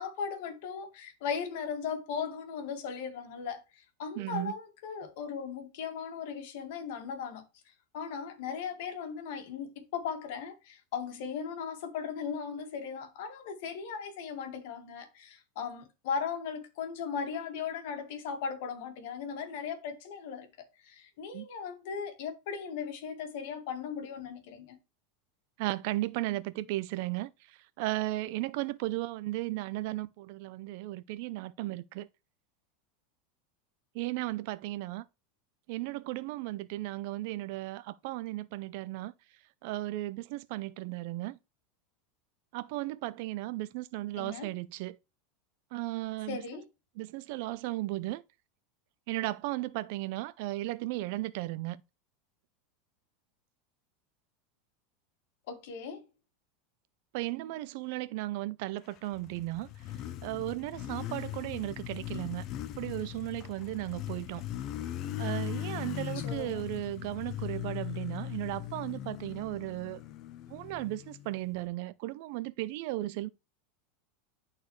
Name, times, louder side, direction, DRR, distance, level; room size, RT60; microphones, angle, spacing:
voice 1, 0.0-7.4 7.9-20.5 20.8-24.8 44.2-44.5 46.3-46.7 55.5-56.0 66.2-66.6, left 6 dB, 65° left, 2.0 m, -37 dB
voice 2, 4.2-4.5 21.3-21.5 25.6-27.3 27.8-32.1 33.9-35.0 35.7-39.1 39.6-41.4 42.5-45.0 45.7-46.4 47.0-48.2 49.1-51.8 57.1-59.7 60.2-62.5 62.8-64.4 65.2-70.0 70.5-73.3, right 17 dB, 60° right, 0.5 m, -35 dB
Motorcycle, 59.0-71.6, left 12 dB, 40° left, 0.6 m, -39 dB
11.5 x 4.2 x 3.2 m
supercardioid pair, 145°, 0 cm